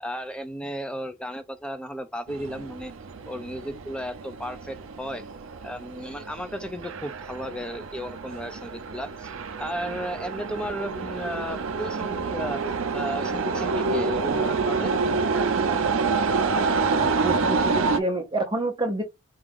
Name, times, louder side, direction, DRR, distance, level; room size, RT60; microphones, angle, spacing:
voice 1, 0.0-2.9 3.3-5.3 5.6-9.3 9.6-12.6 12.9-14.9, equal, 5° left, 0.5 m, -34 dB
sound 1, 2.3-18.0, right 4 dB, 65° right, 0.6 m, -28 dB
voice 2, 16.9-19.0, right 2 dB, 20° right, 0.8 m, -28 dB
4.7 x 2.5 x 3.5 m
head